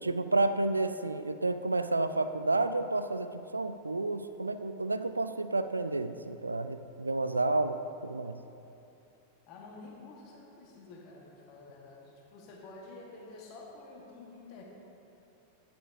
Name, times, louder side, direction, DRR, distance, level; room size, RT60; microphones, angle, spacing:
voice 1, 0.0-8.4, right 2 dB, 80° right, 10 dB, 0.3 m, -30 dB
voice 2, 9.5-14.6, left 3 dB, 40° left, -1 dB, 1.5 m, -49 dB
11.5 x 9.1 x 2.7 m, 2.8 s
figure-of-eight pair, 90°, 0 cm